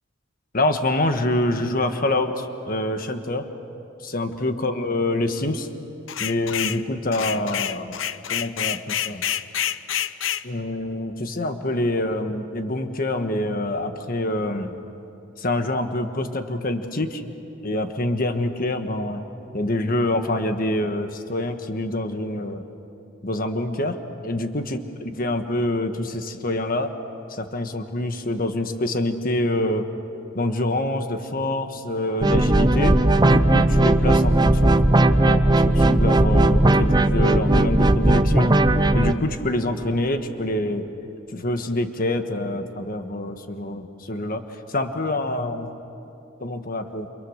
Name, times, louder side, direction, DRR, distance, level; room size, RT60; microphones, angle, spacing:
voice 1, 0.5-3.5 4.0-5.7 6.2-8.0 8.3-9.2 10.4-14.7 15.4-17.3 17.6-19.3 19.5-22.6 23.2-24.8 25.0-26.9 27.3-29.9 30.3-34.8 35.2-38.5 38.9-40.9 41.3-44.4 44.7-45.7 46.4-47.1, left 1 dB, 50° left, 7 dB, 1.4 m, -26 dB
sound 1, 6.1-6.8 7.1-10.4, left 10 dB, 90° left, 0.7 m, -27 dB
sound 2, 32.2-39.1, right 1 dB, 20° right, 0.7 m, -17 dB
29.0 x 28.0 x 6.6 m, 2.9 s
head